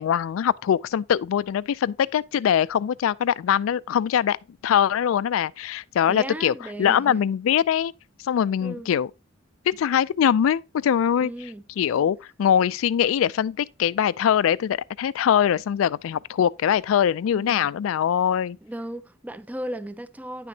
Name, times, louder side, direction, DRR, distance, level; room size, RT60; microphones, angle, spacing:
voice 1, 0.0-4.4 4.6-7.9 8.2-9.1 9.7-11.3 11.8-18.6, left 9 dB, 80° left, 0.3 m, -22 dB
voice 2, 6.1-7.2 8.6-8.9 11.2-11.6 17.3-17.7 18.6-20.5, right 1 dB, 10° right, 0.4 m, -35 dB
10.0 x 5.9 x 2.8 m
head